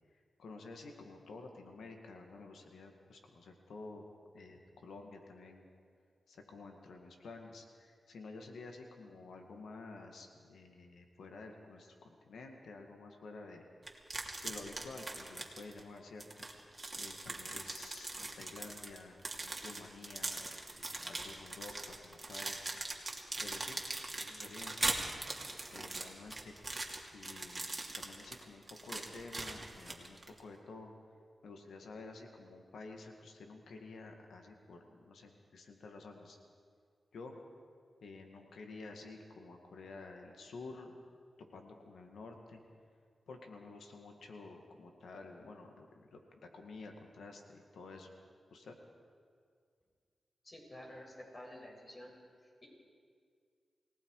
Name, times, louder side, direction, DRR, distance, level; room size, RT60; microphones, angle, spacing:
voice 1, 0.4-5.7 6.3-13.6 14.4-16.5 17.0-22.6 23.4-23.8 24.2-24.8 25.7-30.9 31.4-36.4 37.1-37.4 38.0-41.0 41.5-42.6 43.3-48.1 48.5-48.7, left 3 dB, 85° left, 3 dB, 2.1 m, -51 dB
sound 1, 13.9-15.8 16.2-30.4, right 2 dB, 30° right, 2.8 m, -41 dB
voice 2, 50.4-52.1 52.4-52.7, left 1 dB, 40° left, -2 dB, 7.2 m, -51 dB
29.0 x 18.0 x 4.9 m, 2.1 s
cardioid pair, 65°, 0 cm